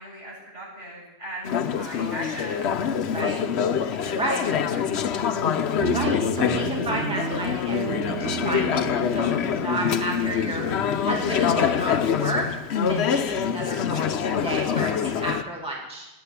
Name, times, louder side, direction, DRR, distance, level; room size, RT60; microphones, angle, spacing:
voice 1, 0.0-1.5 1.8-2.7 4.0-4.3 4.7-5.4, equal, 60° right, -5 dB, 8.0 m, -39 dB
Conversation / Chatter, 1.4-15.4, left 7 dB, 70° left, 1.0 m, -25 dB
Guitar, 5.8-12.5, right 7 dB, 80° right, 1.1 m, -34 dB
voice 2, 5.9-12.5 12.9-16.1, right 1 dB, 5° right, -2 dB, 2.3 m, -32 dB
17.0 x 9.6 x 8.4 m, 1.0 s
omnidirectional pair, 1.2 m